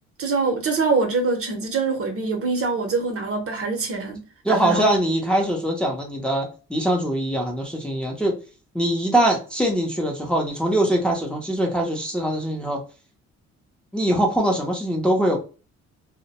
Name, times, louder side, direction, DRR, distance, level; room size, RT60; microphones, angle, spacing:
voice 1, 0.2-4.2 4.5-4.9, right 4 dB, 50° right, 0.7 m, -24 dB
voice 2, 4.4-8.3 8.7-12.8 13.9-15.4, right 1 dB, 5° left, 0.6 m, -22 dB
2.2 x 2.0 x 2.8 m
cardioid pair, 90°, 30 cm